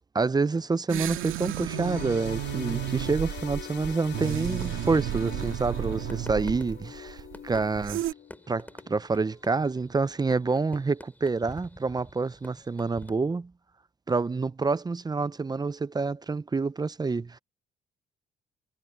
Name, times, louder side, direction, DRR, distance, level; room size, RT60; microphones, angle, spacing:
voice 1, 0.1-8.0 8.5-13.5 14.1-17.4, right 4 dB, 20° right, 0.6 m, -28 dB
sound 1, 0.9-8.1, right 14 dB, 90° right, 2.3 m, -33 dB
sound 2, 1.7-9.3 9.8-9.9 10.8-10.9, left 9 dB, 60° left, 2.8 m, -43 dB
sound 3, 5.5-13.1, left 1 dB, 10° left, 3.2 m, -49 dB
cardioid pair, 90°, 20 cm